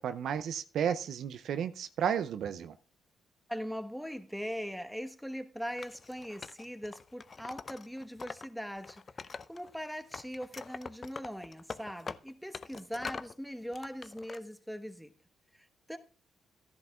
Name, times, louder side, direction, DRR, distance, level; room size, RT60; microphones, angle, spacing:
voice 1, 0.0-2.7, right 8 dB, 70° right, 0.5 m, -33 dB
voice 2, 3.5-15.1 15.5-16.0, equal, ahead, 1.2 m, -41 dB
Wood, 5.8-8.5 8.8-9.8 10.1-13.3 13.7-14.4, left 5 dB, 45° left, 0.5 m, -44 dB
15.0 x 10.5 x 2.4 m
supercardioid pair, 55°, 0 cm